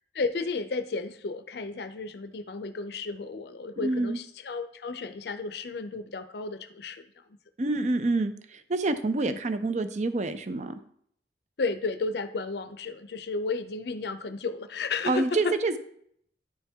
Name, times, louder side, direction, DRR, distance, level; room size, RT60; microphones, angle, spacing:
voice 1, 0.1-7.1 9.2-9.4 11.6-15.6, left 4 dB, 65° left, 11 dB, 0.5 m, -33 dB
voice 2, 3.8-4.2 7.6-10.8 15.1-15.8, right 2 dB, 40° right, 10 dB, 0.5 m, -27 dB
9.8 x 4.3 x 3.5 m, 0.67 s
head